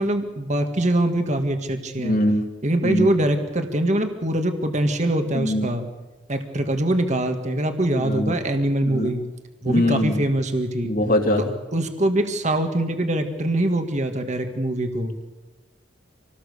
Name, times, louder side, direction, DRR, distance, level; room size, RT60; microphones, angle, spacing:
voice 1, 0.0-2.2 2.6-5.8 6.3-9.2 9.6-10.9 11.4-11.5 11.7-15.1, right 1 dB, 40° right, 6 dB, 1.9 m, -23 dB
voice 2, 2.0-2.4 2.8-3.1 5.3-5.7 8.0-8.3 8.8-9.1 9.7-10.2 10.8-11.4, left 1 dB, 50° left, 3 dB, 3.0 m, -22 dB
27.0 x 19.0 x 6.8 m, 1.1 s
head